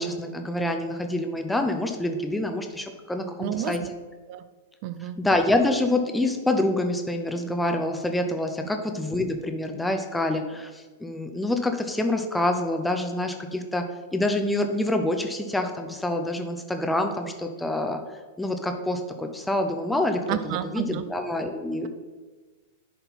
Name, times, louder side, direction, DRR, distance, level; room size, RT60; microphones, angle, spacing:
voice 1, 0.0-3.8 5.2-13.8 14.1-18.0 18.4-21.9, left 1 dB, 5° left, 4 dB, 0.7 m, -26 dB
voice 2, 3.4-3.9 4.3-4.4 4.8-5.2 20.3-21.0, right 11 dB, 45° right, 12 dB, 0.5 m, -30 dB
10.5 x 4.1 x 4.1 m, 1.3 s
figure-of-eight pair, 100°, 0 cm